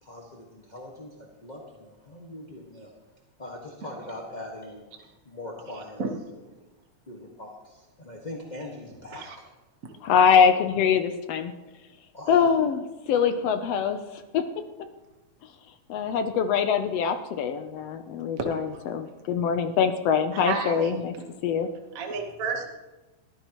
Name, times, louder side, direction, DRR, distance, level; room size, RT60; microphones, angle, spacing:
voice 1, 0.0-2.9 3.4-4.9 5.2-6.4 7.1-9.4 12.1-12.3, left 1 dB, 25° left, -2 dB, 1.1 m, -41 dB
voice 2, 10.0-11.5 12.3-14.4 15.9-21.1 21.4-21.7, left 7 dB, 75° left, 8 dB, 1.6 m, -23 dB
voice 3, 20.3-21.0 21.9-22.7, right 5 dB, 50° right, 2 dB, 1.0 m, -31 dB
22.0 x 14.5 x 3.0 m, 1.1 s
omnidirectional pair, 3.4 m